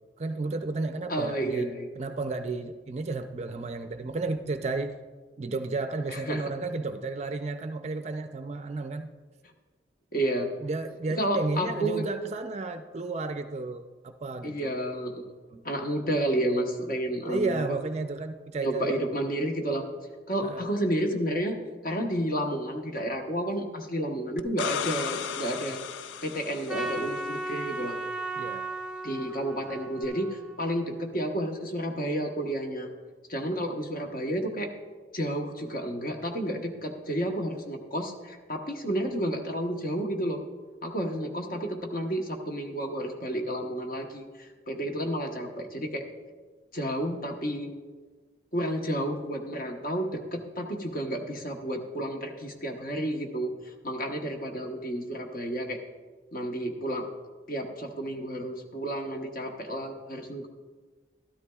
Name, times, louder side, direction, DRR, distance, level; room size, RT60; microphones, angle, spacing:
voice 1, 0.2-5.0 5.4-9.1 10.6-14.7 15.5-15.6 17.3-19.0 20.4-20.6 28.4-28.7, right 3 dB, 35° right, 8 dB, 0.4 m, -33 dB
voice 2, 1.1-1.9 6.1-6.4 10.1-10.6 11.2-12.0 14.4-15.3 15.6-17.8 18.6-19.9 20.3-21.6 21.8-25.8 26.2-28.0 29.0-32.9 33.3-34.7 35.1-40.4 40.8-46.1 46.7-47.7 48.5-55.8 56.3-57.1 57.5-60.5, right 1 dB, 50° left, 2 dB, 1.1 m, -31 dB
sound 1, 24.4-27.2 30.0-30.1, left 7 dB, 85° left, 0.4 m, -35 dB
Trumpet, 26.7-31.1, right 2 dB, 5° right, 0.9 m, -36 dB
12.5 x 12.5 x 2.3 m, 1.4 s
head